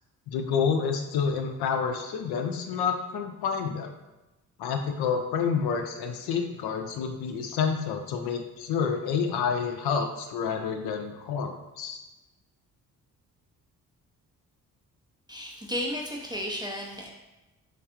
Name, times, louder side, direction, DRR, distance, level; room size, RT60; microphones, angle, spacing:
voice 1, 0.3-3.9 4.6-12.0, left 6 dB, 60° left, 5 dB, 0.5 m, -29 dB
voice 2, 15.3-17.1, equal, 10° right, -1 dB, 0.4 m, -33 dB
3.2 x 2.6 x 2.4 m, 1.0 s
hypercardioid pair, 40°, 44 cm